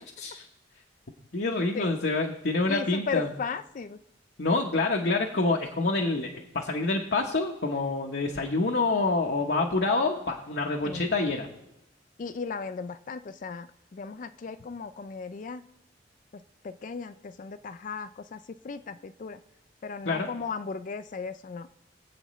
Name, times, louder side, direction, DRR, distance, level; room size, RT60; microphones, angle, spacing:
voice 1, 1.3-3.3 4.4-11.5 20.0-20.3, left 3 dB, 65° left, 0 dB, 0.9 m, -27 dB
voice 2, 2.7-4.0 10.8-11.0 12.2-15.6 16.6-19.4 19.8-21.7, left 5 dB, 45° left, 12 dB, 0.4 m, -36 dB
23.0 x 7.9 x 3.1 m, 0.90 s
head